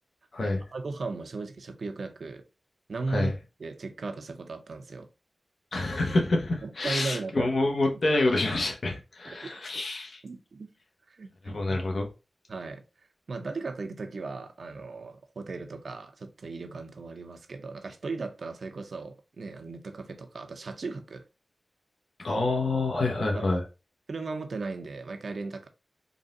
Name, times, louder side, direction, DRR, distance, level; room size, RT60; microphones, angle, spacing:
voice 1, 0.4-2.4 2.9-3.3 3.6-5.1 6.6-7.5 9.2-9.5 10.2-10.7 11.1-11.8 12.5-12.8 13.3-21.2 23.3-23.5 24.1-25.7, right 3 dB, 75° right, 0.6 m, -37 dB
voice 2, 5.7-10.2 11.4-12.1 22.2-23.6, left 2 dB, 65° left, 1.0 m, -27 dB
3.9 x 2.5 x 3.9 m
cardioid pair, 50°, 0 cm